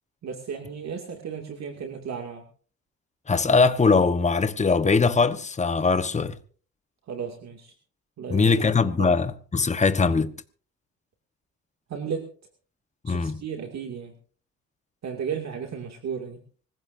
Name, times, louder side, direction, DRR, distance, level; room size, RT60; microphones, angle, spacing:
voice 1, 0.2-2.4 7.1-7.7 8.2-8.6 9.0-9.2 11.9-12.3 13.1-14.1 15.0-16.4, right 7 dB, 60° right, 2.5 m, -34 dB
voice 2, 3.3-6.4 8.3-10.3 13.0-13.4, left 4 dB, 25° left, 1.2 m, -21 dB
25.5 x 15.5 x 2.7 m
cardioid pair, 90°, 30 cm